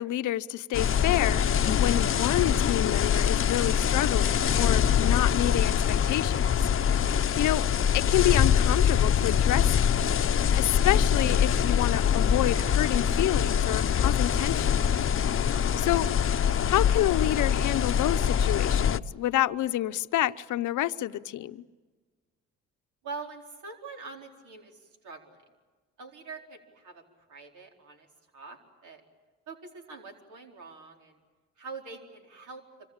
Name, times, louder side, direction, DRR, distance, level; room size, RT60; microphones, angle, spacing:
voice 1, 0.0-6.4 6.8-7.0 7.4-9.8 10.6-14.7 15.8-16.1 16.7-21.6, left 13 dB, 75° left, 0.9 m, -28 dB
sound 1, 0.7-19.0, left 8 dB, 45° left, 0.8 m, -24 dB
voice 2, 23.0-25.4 26.0-27.0 27.3-28.1 28.3-29.0 29.5-31.2 31.6-32.6, right 4 dB, 75° right, 4.5 m, -44 dB
26.0 x 25.5 x 8.8 m
cardioid pair, 90°, 30 cm